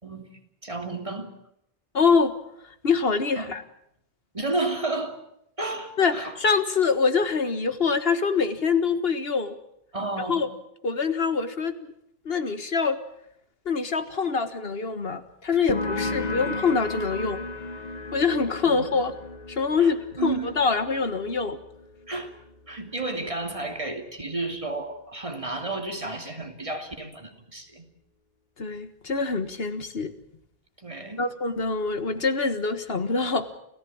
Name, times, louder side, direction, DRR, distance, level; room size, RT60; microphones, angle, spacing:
voice 1, 0.6-1.3 3.4-3.5 4.3-5.2 5.6-6.4 9.9-10.5 18.7-19.0 19.8-20.5 22.1-22.3 22.7-27.9 30.8-31.2, right 2 dB, 30° right, 5 dB, 2.8 m, -32 dB
voice 2, 1.9-2.3 2.8-3.6 6.0-9.6 10.3-10.5 10.8-11.7 12.2-13.0 13.6-17.4 18.1-19.1 19.5-20.0 20.2-21.6 28.6-30.1 31.2-33.5, left 5 dB, 70° left, 11 dB, 1.7 m, -24 dB
sound 1, 15.7-23.0, left 3 dB, 45° left, 1.3 m, -35 dB
30.0 x 15.0 x 8.7 m, 0.78 s
omnidirectional pair, 1.0 m